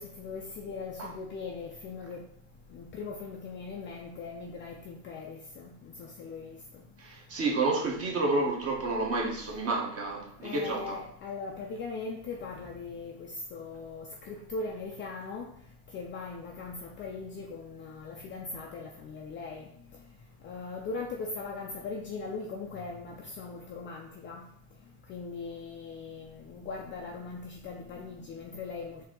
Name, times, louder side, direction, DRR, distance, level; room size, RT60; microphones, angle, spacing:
voice 1, 0.0-2.2 2.7-6.6 10.4-15.5 15.9-19.7 20.4-24.4 25.1-29.0, left 4 dB, 25° left, 0.4 m, -40 dB
voice 2, 7.0-11.0, right 2 dB, 30° right, 1.2 m, -30 dB
4.6 x 2.9 x 3.7 m
supercardioid pair, 125°, 46 cm